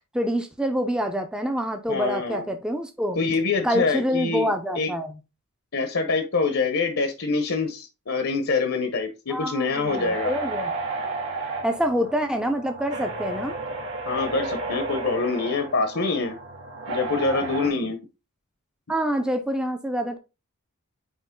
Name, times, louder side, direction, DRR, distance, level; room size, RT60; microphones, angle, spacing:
voice 1, 0.1-3.2 3.6-5.2 9.3-10.7 11.6-13.6 18.9-20.2, equal, 5° right, 0.6 m, -26 dB
voice 2, 1.9-2.5 3.2-4.5 4.8-4.9 5.7-10.3 14.0-16.3 16.9-18.0, left 4 dB, 65° left, 1.0 m, -25 dB
sound 1, 9.9-17.7, right 2 dB, 60° right, 1.9 m, -32 dB
9.0 x 3.1 x 3.7 m
head